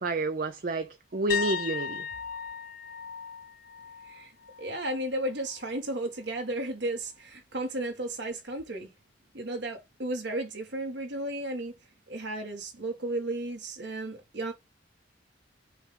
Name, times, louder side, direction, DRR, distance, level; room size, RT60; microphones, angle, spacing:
voice 1, 0.0-2.1, right 2 dB, 45° right, 0.5 m, -29 dB
sound 1, 1.3-5.0 5.4-5.7 8.6-8.7, left 7 dB, 45° left, 0.4 m, -37 dB
voice 2, 4.6-8.9 9.3-11.7 12.1-14.5, right 1 dB, 60° right, 1.5 m, -34 dB
5.6 x 2.5 x 3.3 m
head